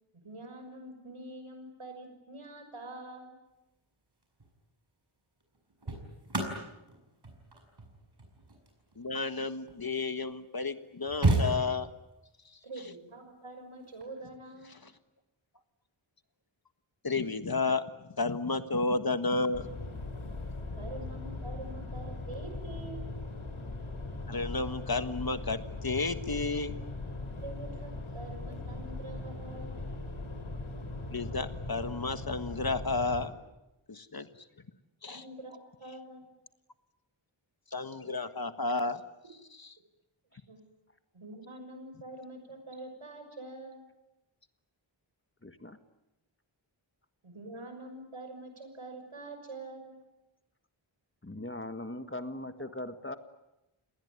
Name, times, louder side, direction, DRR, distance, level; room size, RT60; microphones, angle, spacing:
voice 1, 0.1-3.4 12.6-14.8 20.7-23.1 27.4-29.9 35.1-36.3 40.3-40.6 41.1-43.8 47.2-50.0, right 2 dB, 80° right, 6 dB, 6.1 m, -45 dB
sound 1, 4.2-4.5 5.4-10.0 10.6-10.7 10.8-12.1 13.8-14.0, right 2 dB, 55° right, 6.8 m, -33 dB
voice 2, 9.0-11.9 12.4-12.6 14.8-14.9 17.0-19.7 24.3-26.7 31.1-33.3 33.9-34.3 35.0-35.2 37.7-39.0, left 3 dB, 45° left, 10 dB, 1.5 m, -32 dB
sound 2, 19.5-33.3, left 2 dB, 75° left, 4.3 m, -39 dB
voice 3, 45.4-45.8 51.2-53.2, left 1 dB, 25° left, 9 dB, 1.7 m, -39 dB
29.0 x 20.0 x 9.5 m, 0.98 s
wide cardioid pair, 75°, 49 cm